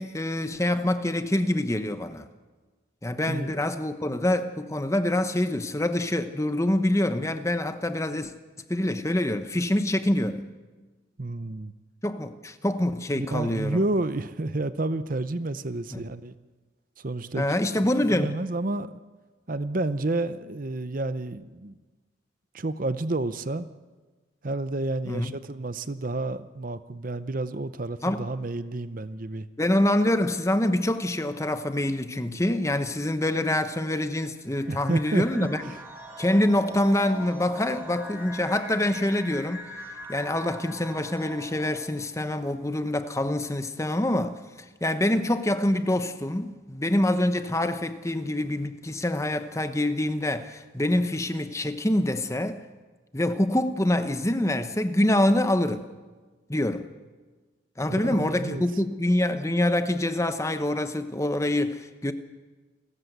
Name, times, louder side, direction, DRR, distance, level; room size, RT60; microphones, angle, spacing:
voice 1, 0.0-2.3 3.0-8.3 8.7-10.4 12.0-13.8 15.9-16.0 17.3-18.3 25.0-25.3 28.0-28.3 29.6-35.6 36.2-39.6 40.1-52.6 53.1-55.8 56.5-56.9 57.8-62.1, left 1 dB, 15° left, 0.9 m, -25 dB
voice 2, 11.2-11.7 13.2-16.4 17.0-17.4 17.8-17.9 18.1-19.0 19.5-21.8 22.5-23.7 24.4-29.5 34.7-35.8 57.8-58.6, right 2 dB, 40° right, 0.7 m, -30 dB
sound 1, 34.5-42.1, equal, 10° right, 3.6 m, -42 dB
29.0 x 14.0 x 8.0 m
head